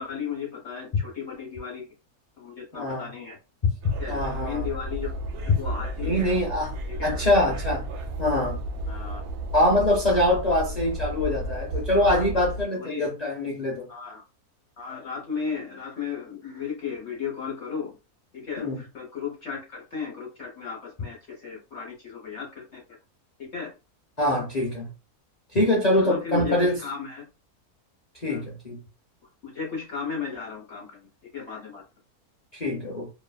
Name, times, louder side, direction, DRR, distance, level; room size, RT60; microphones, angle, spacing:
voice 1, 0.0-1.9 2.4-3.4 4.0-5.1 5.4-6.3 6.9-7.1 8.9-9.2 10.1-10.2 12.1-12.3 12.8-13.1 13.9-14.2 14.8-17.9 18.3-22.8 23.4-23.7 26.0-27.3 28.3-28.4 29.4-31.0 31.3-31.8, left 6 dB, 55° left, 0.8 m, -35 dB
voice 2, 2.7-3.1 3.6-3.7 4.1-4.7 6.0-6.7 7.0-7.9 8.2-8.6 9.5-13.9 18.6-18.8 24.2-24.9 25.5-26.8 28.2-28.8 32.5-33.1, left 1 dB, 80° left, 0.3 m, -24 dB
sound 1, 3.8-12.6, right 1 dB, 70° right, 0.8 m, -33 dB
2.6 x 2.4 x 2.2 m
omnidirectional pair, 1.7 m